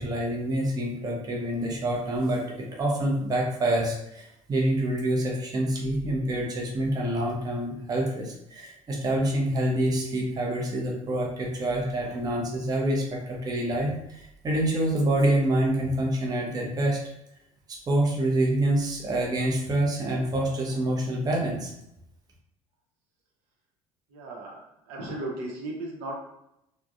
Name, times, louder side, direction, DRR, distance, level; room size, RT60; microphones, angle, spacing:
voice 1, 0.0-2.4 2.8-17.0 17.7-21.7, right 1 dB, 20° right, -2 dB, 0.6 m, -26 dB
voice 2, 24.1-24.6 24.8-26.2, right 2 dB, 60° right, -1 dB, 0.7 m, -35 dB
3.4 x 2.1 x 2.5 m, 0.80 s
figure-of-eight pair, 60°, 18 cm